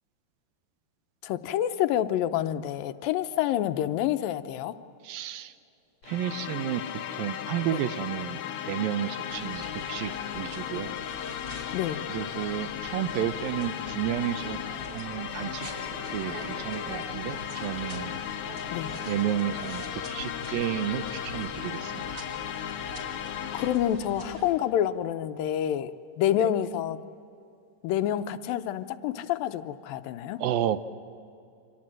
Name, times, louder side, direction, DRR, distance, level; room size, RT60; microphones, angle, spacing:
voice 1, 1.2-4.8 7.7-7.8 11.7-12.0 18.7-18.9 23.5-27.0 27.8-30.4, left 11 dB, 80° left, 10 dB, 2.6 m, -28 dB
voice 2, 5.0-5.5 6.1-6.8 7.1-9.6 9.9-10.9 12.1-14.6 14.9-15.7 16.1-18.1 19.1-19.8 20.1-22.0 26.4-26.5 30.4-30.9, right 11 dB, 80° right, 11 dB, 2.6 m, -31 dB
sound 1, 6.0-24.0, left 10 dB, 65° left, 2.0 m, -36 dB
sound 2, 9.3-24.5, equal, 25° right, 4.0 m, -43 dB
29.5 x 25.5 x 7.7 m, 2.6 s
omnidirectional pair, 4.1 m